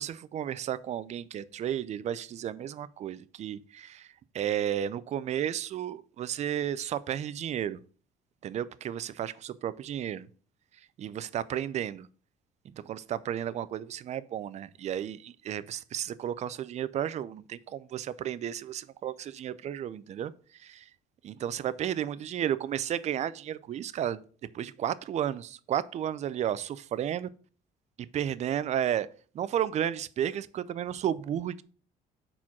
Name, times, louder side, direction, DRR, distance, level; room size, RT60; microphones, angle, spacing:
voice 1, 0.0-7.8 8.4-10.3 10.7-12.1 12.7-20.9 21.2-24.2 24.5-27.3 28.1-29.1 29.3-31.6, right 10 dB, 40° right, 0.4 m, -33 dB
4.4 x 4.3 x 5.8 m
cardioid pair, 110°, 17 cm